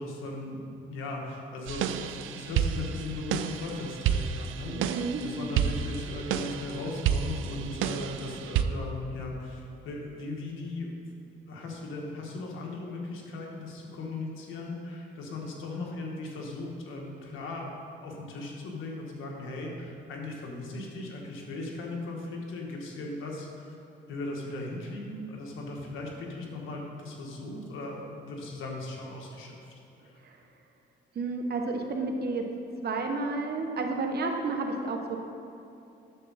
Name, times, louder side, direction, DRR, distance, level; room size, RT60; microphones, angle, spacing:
voice 1, 0.0-11.0 11.5-17.7 18.0-23.7 24.1-29.6 30.0-30.2, left 2 dB, 85° left, -1 dB, 1.6 m, -38 dB
sound 1, 1.7-8.6, right 8 dB, 85° right, 0.5 m, -30 dB
voice 2, 4.7-5.2 30.2-30.3 31.1-32.4 32.8-35.2, right 3 dB, 55° right, 3 dB, 1.2 m, -31 dB
9.8 x 7.2 x 4.2 m, 2.8 s
cardioid pair, 90°, 20 cm